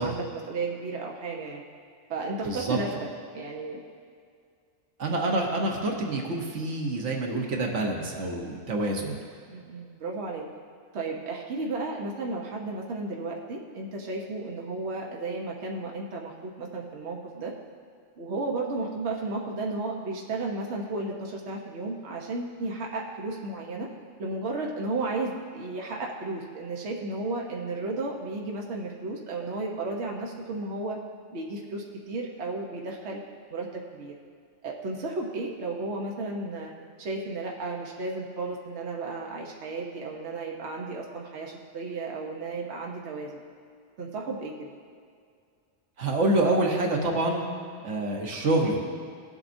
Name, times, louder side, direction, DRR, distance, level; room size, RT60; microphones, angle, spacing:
voice 1, 0.0-1.6 2.1-2.9 3.3-3.8 9.5-10.5 10.9-17.5 18.2-23.9 24.2-31.0 31.3-33.2 33.5-34.2 34.6-36.7 37.0-43.4 44.0-44.7, right 3 dB, 70° right, -1 dB, 1.2 m, -33 dB
voice 2, 2.4-2.8 5.0-9.2 46.0-47.4 47.8-48.8, right 2 dB, 90° right, 1 dB, 1.4 m, -27 dB
17.5 x 7.9 x 2.6 m, 2.2 s
omnidirectional pair, 1.2 m